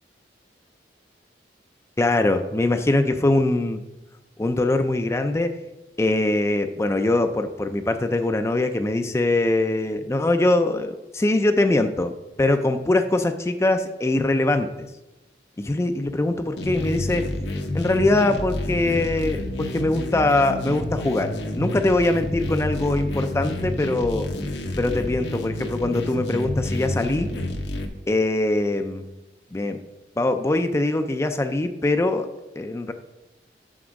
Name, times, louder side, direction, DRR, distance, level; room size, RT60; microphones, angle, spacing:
voice 1, 2.0-3.8 4.4-5.6 6.0-12.1 12.4-14.7 15.6-17.3 17.7-24.3 24.8-27.3 28.1-29.1 29.5-29.8 30.2-32.3 32.6-32.9, left 2 dB, 15° left, 7 dB, 0.3 m, -22 dB
sound 1, 16.6-27.9, left 1 dB, 85° left, 1.0 m, -29 dB
6.0 x 5.9 x 6.3 m, 1.0 s
head